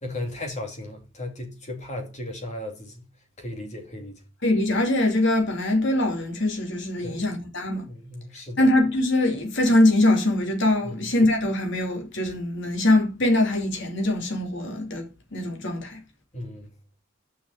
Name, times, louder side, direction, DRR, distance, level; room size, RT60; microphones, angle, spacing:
voice 1, 0.0-3.1 3.4-4.2 7.0-7.2 7.9-8.7 10.8-11.0 16.3-16.7, left 1 dB, 35° left, 2.7 m, -36 dB
voice 2, 4.4-7.9 8.6-16.0, left 1 dB, 65° left, 3.1 m, -23 dB
6.9 x 5.7 x 7.3 m
head